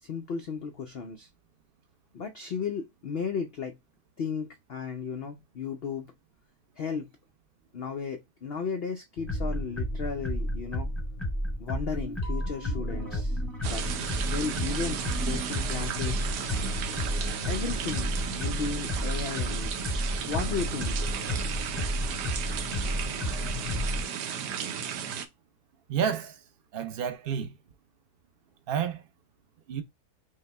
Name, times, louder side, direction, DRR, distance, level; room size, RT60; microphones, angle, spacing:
voice 1, 0.0-1.3 2.1-3.8 4.2-6.1 6.8-7.1 7.7-10.9 11.6-13.8 14.2-16.3 17.5-19.7 20.3-21.0, left 5 dB, 90° left, 0.5 m, -35 dB
sound 1, 9.2-24.0, equal, ahead, 0.5 m, -32 dB
sound 2, 13.6-25.3, right 7 dB, 90° right, 1.3 m, -34 dB
voice 2, 25.9-26.4 26.7-27.5 28.7-29.0 29.7-29.8, right 8 dB, 75° right, 0.5 m, -29 dB
5.4 x 2.1 x 3.2 m
omnidirectional pair, 1.7 m